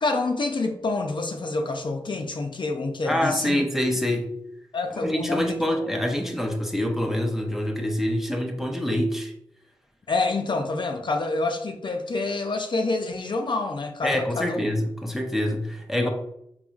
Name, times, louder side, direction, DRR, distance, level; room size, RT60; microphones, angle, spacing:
voice 1, 0.0-3.6 4.7-5.9 10.1-14.6, left 3 dB, 50° left, 4 dB, 0.5 m, -27 dB
voice 2, 3.1-4.3 4.9-9.3 14.0-16.1, left 1 dB, 5° right, 2 dB, 0.6 m, -26 dB
3.8 x 2.9 x 2.4 m, 0.75 s
cardioid pair, 40°, 10 cm